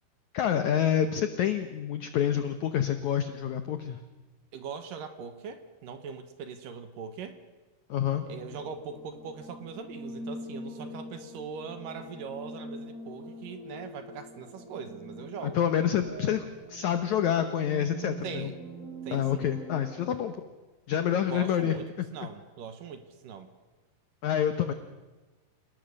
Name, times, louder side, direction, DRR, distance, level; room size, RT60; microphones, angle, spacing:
voice 1, 0.3-4.0 7.9-8.2 15.4-18.5 19.1-20.4 20.9-21.8 22.2-22.3 24.2-24.7, left 9 dB, 75° left, 8 dB, 1.7 m, -27 dB
voice 2, 4.5-7.4 8.3-15.7 18.2-18.6 19.0-19.5 21.3-23.5, right 6 dB, 65° right, 8 dB, 2.6 m, -41 dB
sound 1, 8.1-20.2, right 1 dB, 80° right, 8.9 m, -43 dB
27.5 x 19.0 x 6.5 m, 1.2 s
omnidirectional pair, 4.7 m